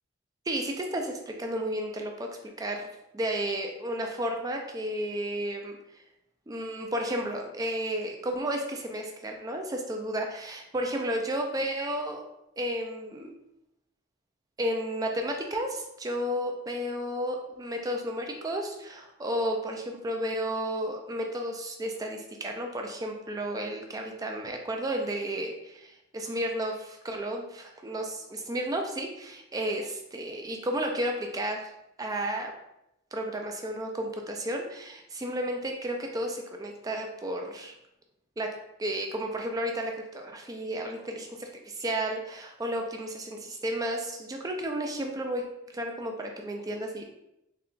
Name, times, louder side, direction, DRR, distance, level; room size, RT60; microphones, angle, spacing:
voice 1, 0.5-2.9 3.1-5.8 6.5-12.2 12.6-13.4 14.6-31.7 32.0-32.5 33.1-37.8 38.4-38.5 38.8-47.0, right 1 dB, 15° right, 3 dB, 0.3 m, -32 dB
3.6 x 2.2 x 3.8 m, 0.85 s
head